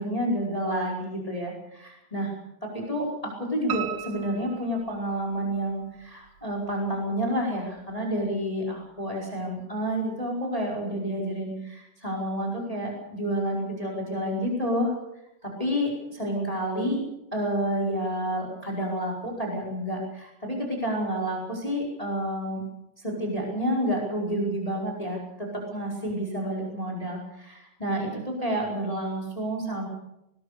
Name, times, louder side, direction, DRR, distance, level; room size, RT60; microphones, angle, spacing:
voice 1, 0.0-2.3 2.6-14.9 15.4-17.0 17.3-22.6 23.0-29.9, equal, 10° left, -1 dB, 4.9 m, -29 dB
Piano, 3.7-5.6 6.0-6.9 7.2-7.3 7.8-7.9 8.1-8.2, right 11 dB, 90° right, 3.0 m, -37 dB
20.5 x 20.0 x 6.8 m, 0.86 s
omnidirectional pair, 3.3 m